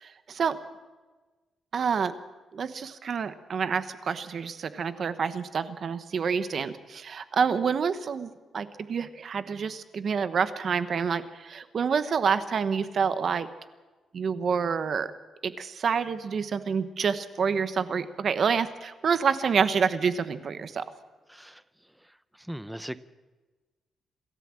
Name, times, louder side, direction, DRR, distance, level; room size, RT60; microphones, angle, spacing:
voice 1, 0.0-0.6 1.7-2.1 2.5-13.5 14.1-15.1 15.4-20.8, right 6 dB, 50° right, 12 dB, 1.1 m, -28 dB
voice 2, 22.5-23.0, equal, 5° right, 14 dB, 0.7 m, -37 dB
27.0 x 13.5 x 7.7 m, 1.3 s
cardioid pair, 135°, 0 cm